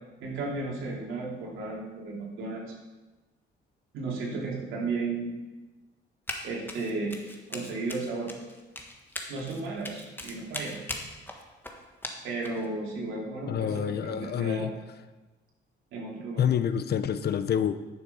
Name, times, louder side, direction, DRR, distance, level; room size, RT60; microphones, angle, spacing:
voice 1, 0.2-2.7 3.9-5.3 6.4-8.3 9.3-10.8 12.2-14.7 15.9-16.4, right 3 dB, 85° right, -3 dB, 3.1 m, -34 dB
Run, 6.3-6.4 6.7-12.7, left 1 dB, 10° left, 1.5 m, -39 dB
voice 2, 13.5-14.7 16.4-17.8, left 9 dB, 55° left, 12 dB, 0.7 m, -27 dB
11.0 x 6.8 x 5.5 m, 1.2 s
cardioid pair, 90°, 20 cm